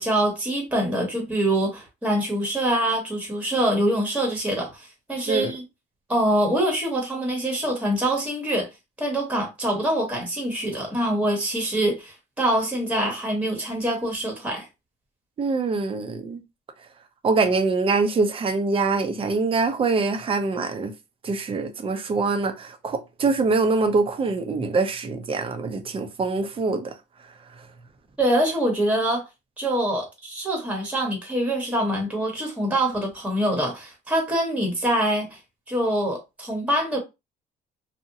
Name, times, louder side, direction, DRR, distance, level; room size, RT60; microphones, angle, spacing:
voice 1, 0.0-5.6 6.1-8.7 9.0-14.7 28.2-29.3 29.6-35.4 35.7-37.0, right 1 dB, 5° right, 1.0 m, -24 dB
voice 2, 15.4-16.4 17.2-20.9 21.2-26.9, right 3 dB, 35° right, 0.6 m, -24 dB
2.7 x 2.1 x 2.6 m
cardioid pair, 110°, 17 cm